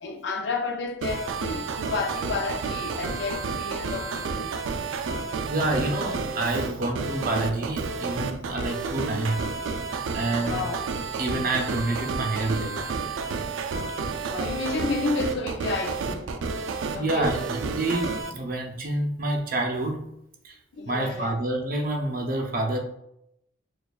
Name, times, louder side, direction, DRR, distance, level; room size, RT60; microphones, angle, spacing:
voice 1, 0.0-4.5 10.4-10.8 14.2-16.3 16.9-17.4 20.7-21.4, left 3 dB, 70° left, 0.5 m, -31 dB
sound 1, 1.0-18.3, right 4 dB, 90° right, 0.4 m, -31 dB
voice 2, 5.5-9.4 10.1-10.7 11.2-12.8 17.0-20.1 20.4-20.5 20.9-22.8, right 2 dB, 45° right, 0.6 m, -28 dB
6.6 x 2.3 x 2.3 m
head